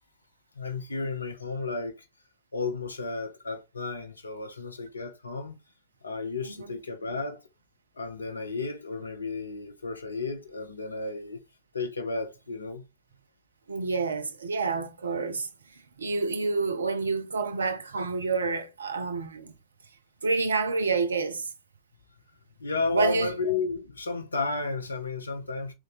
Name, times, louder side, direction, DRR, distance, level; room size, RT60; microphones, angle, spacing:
voice 1, 0.6-2.1 2.5-5.5 6.0-7.4 8.0-11.4 11.7-12.8 22.6-25.7, left 3 dB, 75° left, 0.7 m, -32 dB
voice 2, 6.4-6.8 13.7-19.5 20.2-21.5 22.9-23.3, right 4 dB, 75° right, 0.5 m, -29 dB
3.8 x 2.5 x 3.9 m
figure-of-eight pair, 90°, 0 cm